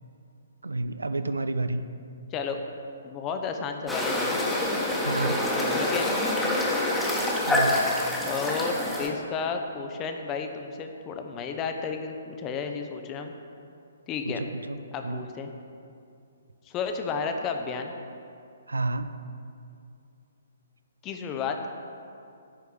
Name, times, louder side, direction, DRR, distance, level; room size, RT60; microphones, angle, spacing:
voice 1, 0.6-1.8 5.0-5.5 7.5-7.9 14.2-14.8 15.0-15.2 18.7-19.1, right 2 dB, 70° right, 11 dB, 0.5 m, -30 dB
voice 2, 3.0-4.4 5.8-6.1 8.2-13.3 14.1-14.4 14.9-15.5 16.7-17.9 21.0-21.6, left 5 dB, 20° left, 5 dB, 0.7 m, -32 dB
sound 1, 3.9-9.1, left 1 dB, 5° left, 1.2 m, -26 dB
10.0 x 4.7 x 8.0 m, 2.5 s
figure-of-eight pair, 125°, 0 cm